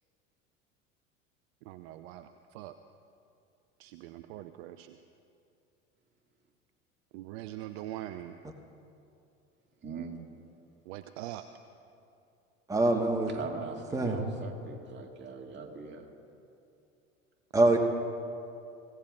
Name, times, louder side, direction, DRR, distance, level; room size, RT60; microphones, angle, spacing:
voice 1, 1.7-2.3 2.5-2.8 3.8-5.0 7.1-8.3 10.9-11.4, right 14 dB, 55° right, 10 dB, 0.6 m, -42 dB
voice 2, 9.8-10.2 13.3-16.1, right 5 dB, 25° right, 1 dB, 2.2 m, -41 dB
voice 3, 12.7-13.3 13.9-14.2 17.5-17.8, right 2 dB, 10° right, 2 dB, 1.4 m, -24 dB
24.5 x 17.0 x 2.4 m, 2.6 s
figure-of-eight pair, 75°, 39 cm